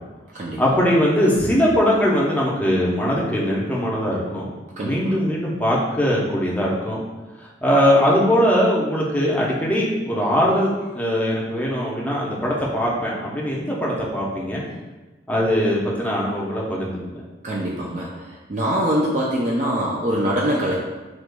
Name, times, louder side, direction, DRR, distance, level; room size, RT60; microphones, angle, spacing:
voice 1, 0.6-4.5 4.8-7.0 7.6-14.6 15.3-17.2, equal, 10° left, -4 dB, 0.6 m, -21 dB
voice 2, 4.8-5.1 17.4-20.7, equal, 40° right, -3 dB, 0.4 m, -23 dB
6.2 x 2.9 x 2.2 m, 1.2 s
head